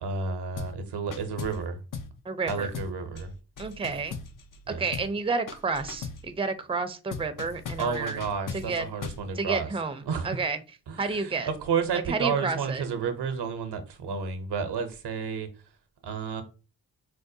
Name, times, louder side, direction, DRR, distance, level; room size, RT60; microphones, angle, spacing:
voice 1, 0.0-1.8 2.5-3.3 4.7-4.8 7.8-9.7 10.1-10.4 10.9-15.5 16.0-16.4, right 5 dB, 85° right, 0.7 m, -31 dB
sound 1, 0.6-0.8 1.1-1.7 1.9-2.2 2.5-4.6 4.9-5.2 5.5-6.3 7.1-9.3, left 5 dB, 55° left, 0.6 m, -39 dB
voice 2, 2.2-2.7 3.6-4.2 4.7-8.2 8.5-8.8 9.3-10.6 11.0-11.5 12.1-12.8, right 4 dB, 15° right, 0.5 m, -30 dB
4.6 x 2.1 x 2.6 m
cardioid pair, 50°, 39 cm